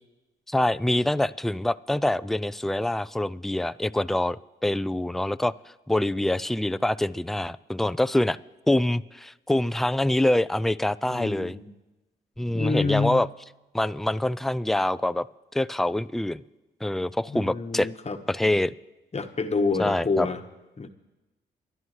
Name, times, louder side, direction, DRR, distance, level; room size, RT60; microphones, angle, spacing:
voice 1, 0.5-5.5 5.9-8.4 8.7-11.6 12.4-13.3 13.7-15.3 15.5-16.4 16.8-17.9 18.3-18.7 19.8-20.3, left 1 dB, ahead, 15 dB, 0.4 m, -25 dB
voice 2, 11.1-11.7 12.5-13.2 17.3-18.2 19.1-20.4 20.8-20.9, left 4 dB, 30° left, 7 dB, 1.2 m, -28 dB
28.0 x 11.5 x 3.2 m, 1.1 s
supercardioid pair, 50°, 20 cm